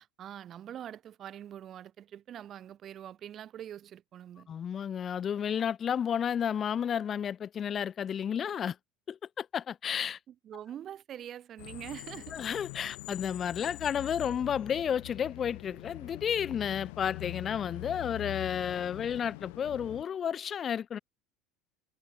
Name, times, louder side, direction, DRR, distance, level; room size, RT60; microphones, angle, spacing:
voice 1, 0.0-4.5 10.3-12.4, right 10 dB, 35° right, 0.7 m, -44 dB
voice 2, 4.5-8.8 9.1-10.2 12.3-21.0, left 8 dB, 30° left, 0.5 m, -32 dB
sound 1, 11.6-20.0, left 28 dB, 80° left, 1.9 m, -43 dB
cardioid pair, 155°, 0 cm